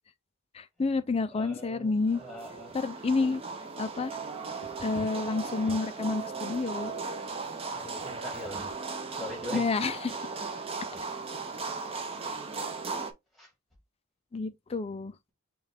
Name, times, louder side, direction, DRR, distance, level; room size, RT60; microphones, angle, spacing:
voice 1, 0.5-2.2 2.7-3.4 3.8-4.1 4.6-6.9 9.5-10.3 14.3-15.1, left 3 dB, 25° left, 0.3 m, -29 dB
voice 2, 1.3-2.7 7.7-8.7 9.2-9.6 10.9-11.1 13.3-13.5, left 1 dB, ahead, 1.8 m, -42 dB
sound 1, 2.0-13.1, right 4 dB, 25° right, 0.6 m, -37 dB
5.5 x 2.3 x 3.4 m
head